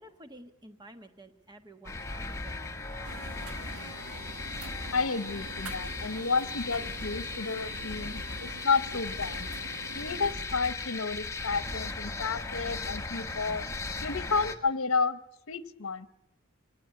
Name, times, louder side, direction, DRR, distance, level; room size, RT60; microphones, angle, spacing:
voice 1, 0.0-3.3, right 1 dB, 20° right, 8 dB, 1.4 m, -52 dB
sound 1, 1.8-14.5, left 3 dB, 15° left, 1.3 m, -37 dB
sound 2, 3.0-10.3, right 3 dB, 85° right, 1.5 m, -45 dB
voice 2, 4.9-9.5 9.9-13.6 14.0-15.2 15.5-16.1, left 4 dB, 70° left, 14 dB, 0.9 m, -31 dB
24.5 x 18.0 x 9.9 m, 0.81 s
head